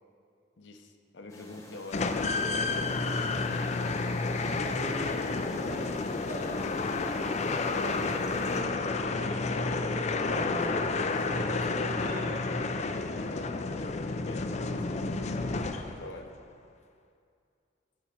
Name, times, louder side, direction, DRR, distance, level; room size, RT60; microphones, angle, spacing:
voice 1, 0.6-2.1 7.8-10.6 11.5-12.3 13.3-13.5 13.8-14.9 16.0-16.3, left 2 dB, 70° left, 4 dB, 0.8 m, -45 dB
sound 1, 1.3-8.6, left 1 dB, 15° left, 1.1 m, -49 dB
sound 2, 1.9-16.2, left 3 dB, 35° left, 0.4 m, -30 dB
voice 2, 4.5-5.2 5.6-6.7 10.2-12.3, equal, 45° right, -3 dB, 1.9 m, -40 dB
15.0 x 5.6 x 4.4 m, 2.4 s
head